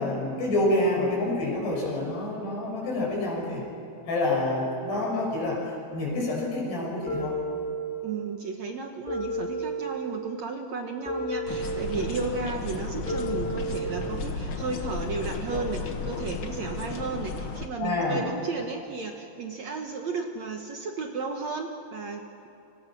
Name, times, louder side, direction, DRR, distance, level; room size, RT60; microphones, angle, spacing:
voice 1, 0.0-3.6 4.1-7.4 17.8-18.2, left 2 dB, 85° left, -2 dB, 9.0 m, -27 dB
sound 1, 7.1-8.2 9.1-10.2 11.1-12.2 13.1-14.2, right 2 dB, ahead, 5.2 m, -32 dB
voice 2, 8.0-22.5, right 4 dB, 60° right, 3 dB, 1.9 m, -34 dB
sound 2, 11.5-17.7, left 4 dB, 55° left, 1.5 m, -34 dB
28.5 x 26.0 x 6.2 m, 2.9 s
omnidirectional pair, 4.6 m